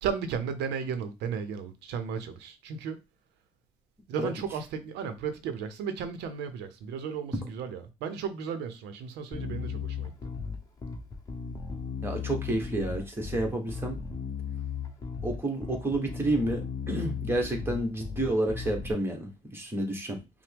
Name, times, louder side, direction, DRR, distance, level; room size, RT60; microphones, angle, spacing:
voice 1, 0.0-3.0 4.1-10.2, right 6 dB, 85° right, 0.7 m, -34 dB
Bass guitar, 9.3-18.9, left 6 dB, 20° left, 1.0 m, -36 dB
voice 2, 12.0-13.9 15.2-20.2, right 1 dB, 15° right, 1.3 m, -30 dB
5.7 x 2.1 x 3.5 m
cardioid pair, 110°, 17 cm